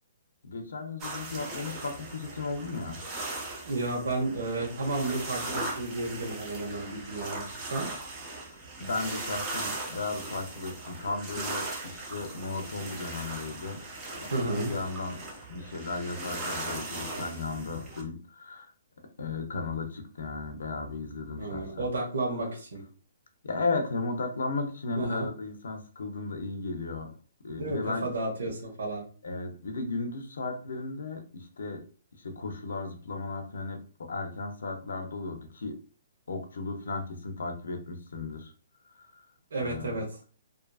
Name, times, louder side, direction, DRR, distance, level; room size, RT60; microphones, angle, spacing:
voice 1, 0.4-3.0 8.5-13.8 14.2-15.2 15.5-18.7 19.2-21.9 23.4-27.1 27.4-28.1 29.2-31.8 32.1-35.8 36.3-38.5 38.9-39.3 39.6-40.0, left 3 dB, 90° left, 6 dB, 0.5 m, -35 dB
sound 1, 1.0-18.0, right 2 dB, 15° right, 0.4 m, -39 dB
voice 2, 3.6-7.4 7.7-7.9 14.3-14.7 21.4-22.8 24.9-25.3 27.6-29.0 39.5-40.1, right 2 dB, 85° right, -1 dB, 0.9 m, -32 dB
2.6 x 2.4 x 2.3 m, 0.39 s
hypercardioid pair, 180°, 0 cm